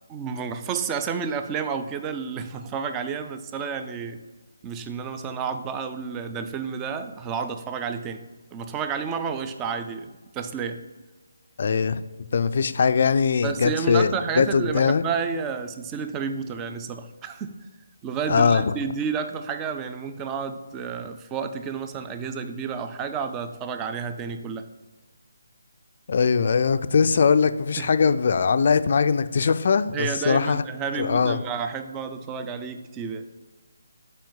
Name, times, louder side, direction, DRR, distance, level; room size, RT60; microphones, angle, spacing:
voice 1, 0.1-4.2 4.6-10.8 13.4-17.7 18.0-24.7 27.8-28.0 29.9-33.3, right 6 dB, 15° right, 8 dB, 0.4 m, -31 dB
voice 2, 11.6-12.0 12.3-15.0 18.3-18.7 26.1-30.6 31.0-31.4, left 5 dB, 50° left, 12 dB, 0.4 m, -21 dB
7.6 x 4.4 x 3.8 m, 1.2 s
figure-of-eight pair, 160°, 0 cm